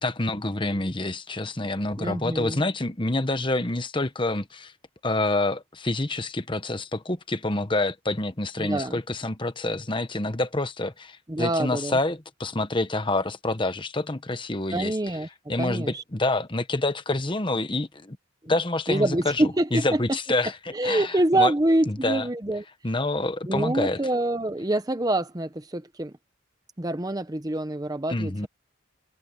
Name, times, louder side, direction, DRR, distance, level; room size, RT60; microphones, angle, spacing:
voice 1, 0.0-4.7 5.0-15.0 15.5-18.2 18.5-20.6 20.8-21.5 21.9-22.3 22.8-24.0 28.1-28.5, left 2 dB, 25° left, 1.1 m, -27 dB
voice 2, 2.0-2.6 8.6-9.0 11.3-12.0 14.7-15.3 15.6-16.0 18.9-20.0 20.7-22.6 23.5-26.1 26.8-28.5, right 1 dB, 20° right, 0.8 m, -26 dB
head